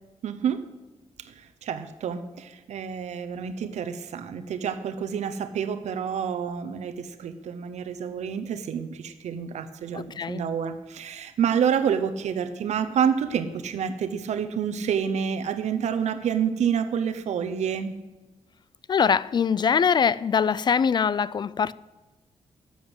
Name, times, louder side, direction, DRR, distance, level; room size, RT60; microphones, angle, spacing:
voice 1, 0.2-0.6 1.2-17.9, right 7 dB, 90° right, 0.8 m, -28 dB
voice 2, 9.9-10.4 18.9-21.7, left 6 dB, 40° left, 0.3 m, -23 dB
13.0 x 8.0 x 8.0 m
wide cardioid pair, 140°, 11 cm